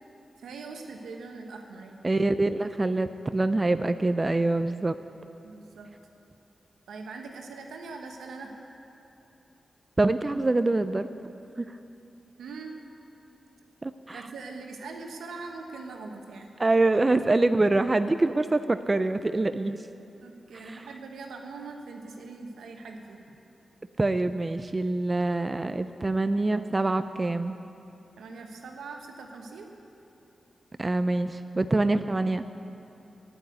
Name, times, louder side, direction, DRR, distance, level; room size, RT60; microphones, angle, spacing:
voice 1, 0.4-2.0 5.4-5.9 6.9-8.5 12.4-12.7 14.1-16.5 20.2-23.2 28.2-29.7, right 4 dB, 90° right, 3 dB, 1.1 m, -41 dB
voice 2, 2.0-5.0 10.0-11.1 13.8-14.2 16.6-19.8 20.5-20.8 24.0-27.6 30.8-32.4, right 2 dB, 35° right, 10 dB, 0.4 m, -25 dB
9.2 x 9.0 x 9.4 m, 2.9 s
cardioid pair, 45°, 0 cm